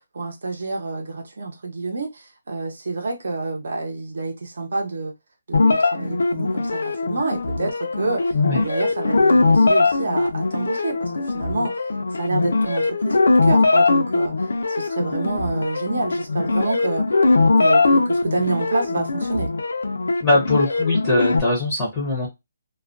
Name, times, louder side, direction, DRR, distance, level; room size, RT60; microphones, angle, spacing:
voice 1, 0.0-5.1 5.5-8.2 8.5-11.7 12.2-17.2 17.5-19.5, right 3 dB, 60° right, 0.7 m, -28 dB
sound 1, 5.5-21.4, left 3 dB, 85° left, 0.5 m, -20 dB
voice 2, 20.2-22.3, left 2 dB, 10° left, 0.6 m, -21 dB
2.3 x 2.1 x 2.4 m
hypercardioid pair, 175°, 0 cm